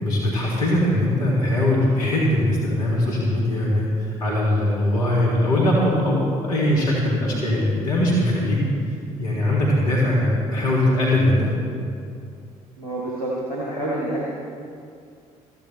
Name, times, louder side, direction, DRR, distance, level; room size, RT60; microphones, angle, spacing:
voice 1, 0.0-3.9 4.2-8.6 9.2-11.5, left 1 dB, 75° left, -5 dB, 2.3 m, -21 dB
voice 2, 12.8-14.2, right 1 dB, 85° right, -5 dB, 1.4 m, -27 dB
15.5 x 14.0 x 3.2 m, 2.4 s
figure-of-eight pair, 50°, 18 cm